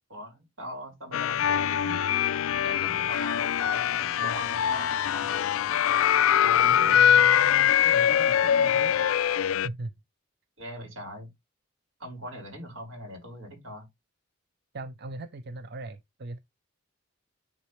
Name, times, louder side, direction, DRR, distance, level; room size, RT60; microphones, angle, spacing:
voice 1, 0.1-2.0 2.6-5.3 10.6-11.3 12.0-13.9, equal, 80° right, 4.1 m, -41 dB
sound 1, 1.1-9.7, left 9 dB, 80° left, 0.3 m, -23 dB
Car / Idling, 2.5-9.1, equal, ahead, 1.0 m, -52 dB
voice 2, 6.6-9.0 9.5-9.9 14.7-16.4, right 2 dB, 50° right, 0.6 m, -39 dB
9.9 x 4.1 x 3.2 m
head